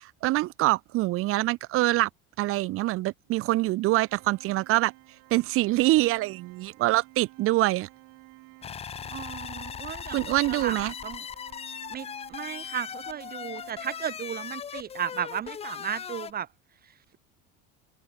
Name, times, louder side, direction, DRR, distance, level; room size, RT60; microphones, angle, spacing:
voice 1, 0.0-2.1 2.4-4.9 5.3-7.9 10.1-10.9, right 18 dB, 45° right, 0.5 m, -25 dB
Organ, 3.9-14.6, right 29 dB, 70° right, 3.4 m, -53 dB
sound 1, 8.6-16.3, left 7 dB, 20° left, 0.5 m, -39 dB
voice 2, 9.1-11.2 11.9-16.5, right 9 dB, 30° right, 0.9 m, -35 dB
cardioid pair, 130°, 31 cm